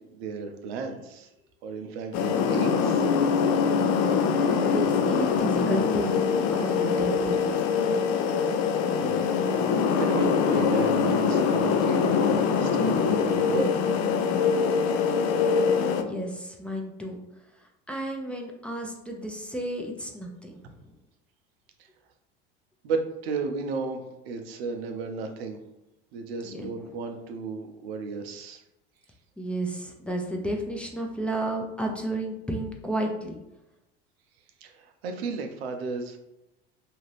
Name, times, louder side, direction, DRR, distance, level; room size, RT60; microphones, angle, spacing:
voice 1, 0.1-1.3 1.6-3.0 9.0-9.4 9.7-13.7 22.8-25.6 26.1-28.6 34.6-36.2, right 4 dB, 80° right, 5 dB, 0.6 m, -33 dB
sound 1, 2.1-16.0, left 6 dB, 55° left, 0.5 m, -23 dB
voice 2, 4.4-7.6 14.6-14.7 16.0-17.2 17.9-20.8 26.4-26.7 29.4-33.4, right 1 dB, 5° left, 0 dB, 0.5 m, -32 dB
2.8 x 2.5 x 3.2 m, 0.92 s
hypercardioid pair, 80°, 30 cm